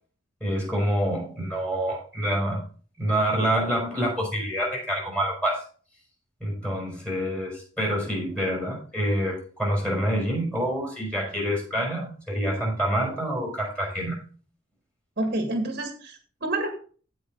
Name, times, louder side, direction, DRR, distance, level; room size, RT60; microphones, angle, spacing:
voice 1, 0.4-2.6 3.0-5.6 6.4-14.2, equal, 5° left, -2 dB, 5.6 m, -27 dB
voice 2, 15.2-16.7, right 2 dB, 45° right, 4 dB, 1.9 m, -28 dB
15.5 x 5.2 x 3.9 m, 0.40 s
head